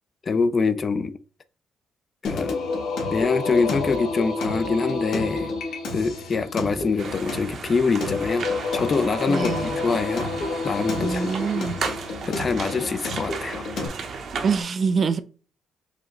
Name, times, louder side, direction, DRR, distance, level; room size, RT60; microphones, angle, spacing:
voice 1, 0.2-1.1 2.2-2.6 3.1-5.5 5.9-10.3 10.6-11.7 12.3-13.6, left 4 dB, 40° left, 0.4 m, -25 dB
Singing, 2.2-13.9, left 3 dB, 80° left, 1.2 m, -29 dB
sound 1, 7.0-14.6, right 5 dB, 60° right, 0.9 m, -35 dB
voice 2, 9.3-9.8 11.0-11.8 14.4-15.2, right 5 dB, 45° right, 0.5 m, -25 dB
4.9 x 2.1 x 3.8 m
cardioid pair, 90°, 0 cm